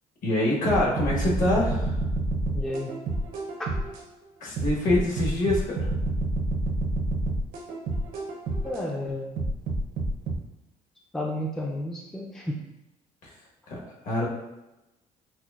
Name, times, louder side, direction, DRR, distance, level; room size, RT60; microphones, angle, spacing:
voice 1, 0.2-1.9 4.4-5.9 13.2-13.3 13.7-14.3, left 1 dB, 60° left, -3 dB, 1.2 m, -25 dB
sound 1, 0.7-4.0 4.6-8.8 9.4-10.3, right 2 dB, 70° right, 0.8 m, -28 dB
voice 2, 2.5-3.0 3.6-3.7 8.6-9.4 11.1-12.6, left 1 dB, 5° left, -1 dB, 0.4 m, -32 dB
5.7 x 2.1 x 2.4 m, 0.98 s
cardioid pair, 100°, 15 cm